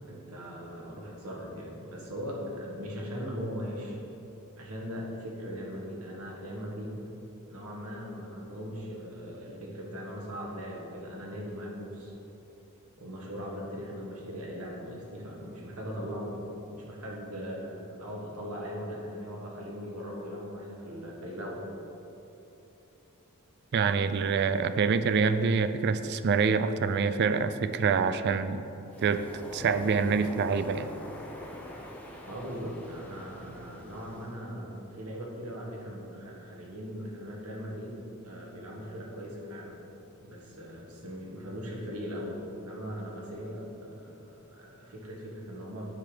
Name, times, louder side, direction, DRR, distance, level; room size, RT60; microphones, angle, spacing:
voice 1, 0.1-4.0 4.6-7.1 7.5-12.1 13.0-16.4 16.7-21.6 32.3-39.7 40.2-45.9, equal, 85° right, -2 dB, 1.6 m, -39 dB
voice 2, 23.7-28.6 29.0-29.2 29.5-30.9, right 5 dB, 50° right, 12 dB, 0.3 m, -26 dB
Waves surf, 28.9-34.4, left 1 dB, 5° left, 0.7 m, -44 dB
9.5 x 4.0 x 5.0 m, 3.0 s
head